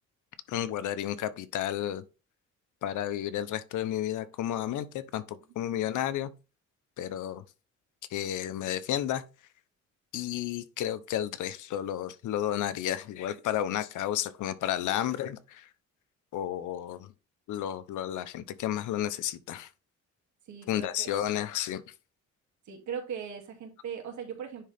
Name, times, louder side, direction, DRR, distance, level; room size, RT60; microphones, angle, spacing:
voice 1, 0.5-2.0 2.8-6.3 7.0-7.4 8.1-9.2 10.1-15.7 16.3-17.1 17.5-19.7 20.7-21.8, left 11 dB, 80° left, 0.8 m, -32 dB
voice 2, 20.5-21.1 22.6-24.7, right 7 dB, 70° right, 2.6 m, -39 dB
10.0 x 3.7 x 3.5 m
cardioid pair, 90°, 30 cm